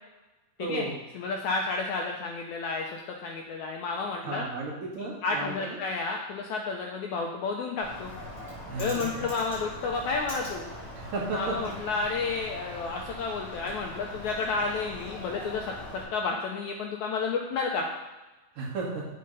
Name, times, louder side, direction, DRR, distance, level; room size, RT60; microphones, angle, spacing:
voice 1, 0.6-0.9 4.2-5.8 8.7-9.0 11.0-11.6 18.6-19.1, right 3 dB, 65° right, -5 dB, 3.6 m, -34 dB
voice 2, 1.1-4.5 5.0-8.1 8.8-10.6 11.3-17.9, left 4 dB, 85° left, 1 dB, 1.7 m, -31 dB
Bird, 7.8-16.0, equal, 20° left, 3.5 m, -41 dB
7.5 x 6.8 x 5.5 m, 1.1 s
omnidirectional pair, 4.3 m